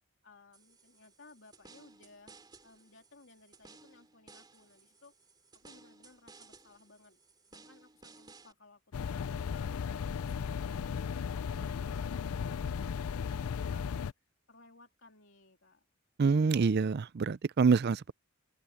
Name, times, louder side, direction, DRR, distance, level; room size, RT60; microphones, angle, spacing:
voice 1, 0.2-5.1 5.5-7.2 7.5-9.2 9.5-14.1 14.5-15.9, left 3 dB, 55° left, 3.4 m, -59 dB
sound 1, 0.5-8.5, right 3 dB, 20° right, 3.5 m, -58 dB
sound 2, 8.9-14.1, left 6 dB, 75° left, 0.4 m, -35 dB
voice 2, 16.2-18.1, right 5 dB, 45° right, 0.4 m, -26 dB
open air
head